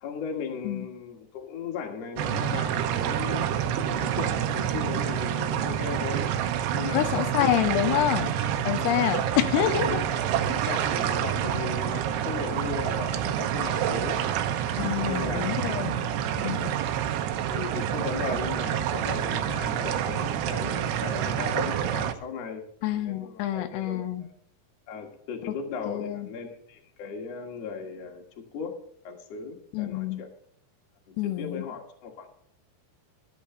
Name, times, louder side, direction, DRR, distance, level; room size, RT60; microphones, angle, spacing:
voice 1, 0.0-6.2 6.7-7.6 9.0-9.3 9.8-14.2 14.9-15.9 17.5-22.7 22.9-24.3 24.9-28.8 29.0-30.3 31.1-32.3, left 6 dB, 50° left, 2 dB, 2.3 m, -37 dB
sound 1, 2.2-22.1, right 10 dB, 80° right, 3.0 m, -28 dB
voice 2, 6.9-8.3 8.7-10.0 14.8-16.7 22.8-24.2 25.9-26.3 29.7-30.2 31.2-31.6, left 12 dB, 85° left, 8 dB, 3.0 m, -27 dB
13.0 x 8.6 x 5.7 m, 0.67 s
omnidirectional pair, 4.8 m